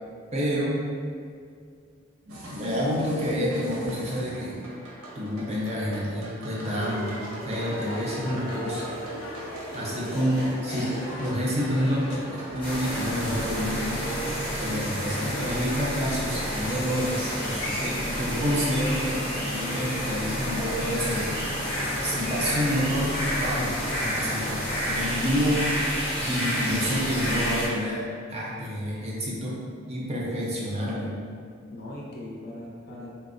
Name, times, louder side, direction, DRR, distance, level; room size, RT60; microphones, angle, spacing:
voice 1, 0.3-0.8 2.3-4.6 5.1-7.2 7.4-8.9 9.7-14.0 14.6-21.5 22.0-25.7 26.3-28.0 28.3-29.6 29.9-31.1, equal, 30° right, -5 dB, 0.5 m, -28 dB
sound 1, 2.3-13.5, right 1 dB, 85° right, 0.7 m, -41 dB
sound 2, 6.6-25.1, equal, 85° left, 0.7 m, -39 dB
sound 3, 12.6-27.7, equal, 5° left, 0.7 m, -30 dB
voice 2, 17.5-18.1 31.7-33.1, left 1 dB, 50° left, -3 dB, 0.5 m, -40 dB
4.2 x 2.0 x 2.5 m, 2.1 s
head